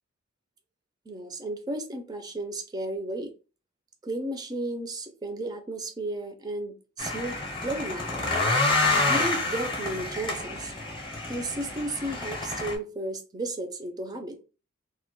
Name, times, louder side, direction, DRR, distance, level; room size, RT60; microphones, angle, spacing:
voice 1, 1.1-3.3 4.0-7.4 7.6-8.3 9.1-10.7 11.3-14.4, right 1 dB, 20° right, 0.3 m, -33 dB
sound 1, 7.0-12.8, left 2 dB, 25° left, 0.6 m, -28 dB
2.1 x 2.0 x 2.9 m
head